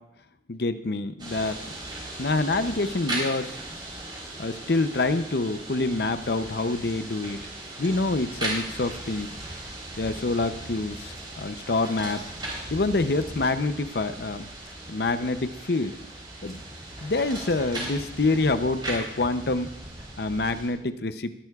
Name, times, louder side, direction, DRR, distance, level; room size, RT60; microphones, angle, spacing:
voice 1, 0.5-1.7 2.2-3.5 4.4-7.4 7.8-9.3 10.0-12.2 12.7-14.5 14.9-16.0 16.4-16.6 17.0-19.7 20.2-21.3, left 3 dB, 65° left, 10 dB, 0.7 m, -26 dB
sound 1, 1.2-20.7, right 1 dB, 25° right, 3.8 m, -37 dB
20.0 x 11.5 x 2.4 m, 0.82 s
head